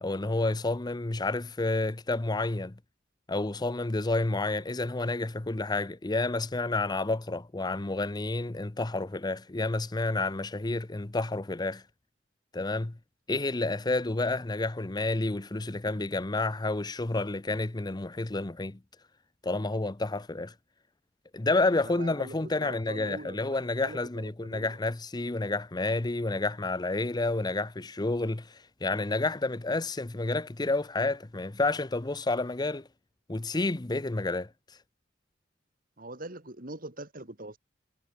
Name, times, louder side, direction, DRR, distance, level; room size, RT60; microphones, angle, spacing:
voice 1, 0.0-2.7 3.3-11.8 12.5-13.0 13.3-18.8 19.4-20.5 21.3-32.9 33.3-34.5, left 2 dB, 25° left, 0.7 m, -30 dB
voice 2, 21.7-22.3 22.6-24.7 36.0-37.6, right 2 dB, 50° right, 3.4 m, -43 dB
head